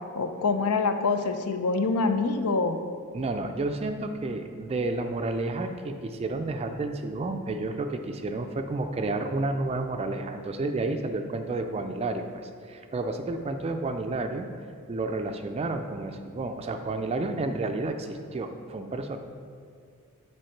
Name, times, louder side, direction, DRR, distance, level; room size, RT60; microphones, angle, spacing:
voice 1, 0.1-2.8, left 4 dB, 85° left, 7 dB, 0.6 m, -25 dB
voice 2, 3.1-14.5 14.9-19.2, right 2 dB, 25° right, 6 dB, 0.3 m, -31 dB
7.7 x 4.6 x 4.5 m, 2.3 s
head